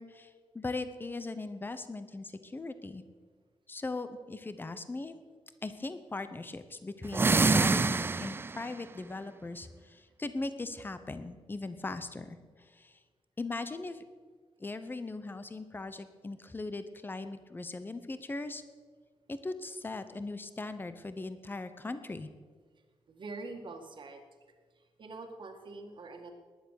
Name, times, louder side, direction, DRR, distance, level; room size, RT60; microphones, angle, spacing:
voice 1, 0.0-3.0 3.7-5.2 5.6-12.4 12.7-13.0 13.4-14.0 14.6-18.6 19.4-22.3, left 3 dB, 20° left, 11 dB, 0.9 m, -39 dB
sound 1, 7.1-8.7, right 3 dB, 20° right, 0.4 m, -26 dB
voice 2, 23.1-24.2 25.0-26.3, right 3 dB, 50° right, 4 dB, 2.0 m, -44 dB
19.0 x 11.0 x 6.6 m, 1.5 s
wide cardioid pair, 165°, 11 cm